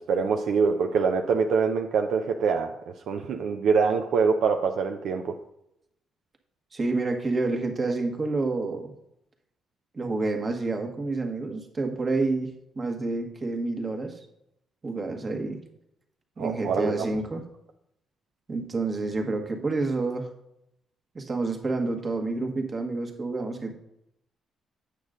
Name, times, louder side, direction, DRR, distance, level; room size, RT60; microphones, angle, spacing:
voice 1, 0.1-2.8 3.1-5.4 16.4-17.1, right 5 dB, 75° right, 4 dB, 0.6 m, -24 dB
voice 2, 6.7-8.9 9.9-14.2 14.8-15.6 16.4-17.4 18.5-20.3 21.1-23.7, right 3 dB, 35° right, 4 dB, 1.4 m, -29 dB
8.5 x 6.5 x 3.8 m, 0.80 s
cardioid pair, 90°, 0 cm